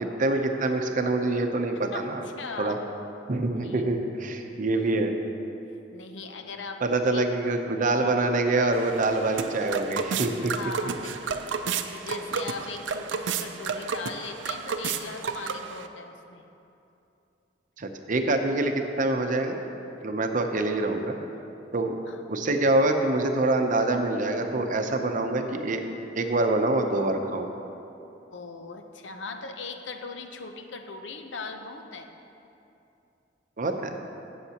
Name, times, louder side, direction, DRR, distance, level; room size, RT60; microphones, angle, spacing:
voice 1, 0.0-2.3 2.6-2.8 3.3-5.2 6.8-10.5 17.8-18.7 19.0-19.6 20.0-21.2 21.7-22.0 22.3-25.8 26.2-27.5 33.6-33.9, right 2 dB, 45° right, 5 dB, 0.7 m, -25 dB
voice 2, 1.9-2.8 3.6-3.9 5.9-6.8 7.1-7.2 10.4-16.4 22.1-22.2 28.3-32.1, left 4 dB, 85° left, 5 dB, 0.7 m, -39 dB
sound 1, 8.7-15.9, right 5 dB, 85° right, 0.5 m, -32 dB
16.0 x 7.3 x 2.9 m, 2.8 s
head